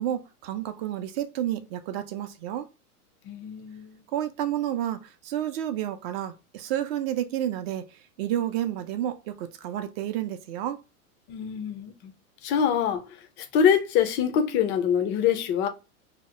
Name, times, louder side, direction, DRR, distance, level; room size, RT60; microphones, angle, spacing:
voice 1, 0.0-2.7 4.1-10.8, right 11 dB, 45° right, 0.5 m, -30 dB
voice 2, 3.3-4.0 11.3-12.1 12.4-13.0 13.4-15.7, left 8 dB, 25° left, 0.4 m, -24 dB
2.8 x 2.0 x 4.0 m
hypercardioid pair, 120°, 45 cm